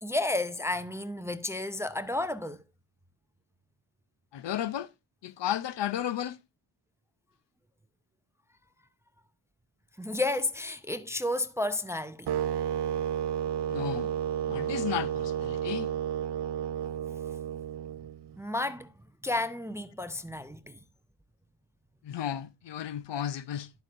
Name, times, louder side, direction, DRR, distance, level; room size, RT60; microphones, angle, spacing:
voice 1, 0.0-2.6 10.0-12.3 18.4-18.9 19.2-20.8, left 2 dB, 5° right, 0.5 m, -32 dB
voice 2, 4.3-4.9 5.2-6.4 13.7-14.1 14.5-15.9 22.0-23.7, left 11 dB, 60° left, 0.6 m, -33 dB
sound 1, 12.3-18.3, right 10 dB, 60° right, 0.5 m, -32 dB
10.5 x 7.9 x 2.5 m
cardioid pair, 85°, 49 cm